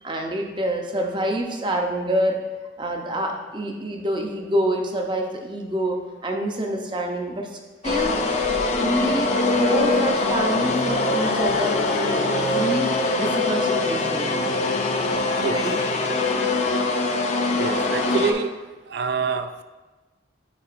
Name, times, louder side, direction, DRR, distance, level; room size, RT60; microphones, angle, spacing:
voice 1, 0.0-2.4 2.8-8.2 8.8-14.3 15.5-15.8, right 1 dB, 25° right, 2 dB, 0.6 m, -27 dB
sound 1, 7.8-18.3, left 3 dB, 35° left, 0.5 m, -23 dB
voice 2, 17.6-18.5 18.9-19.6, right 5 dB, 60° right, 10 dB, 0.3 m, -26 dB
8.4 x 4.7 x 2.5 m, 1.2 s
head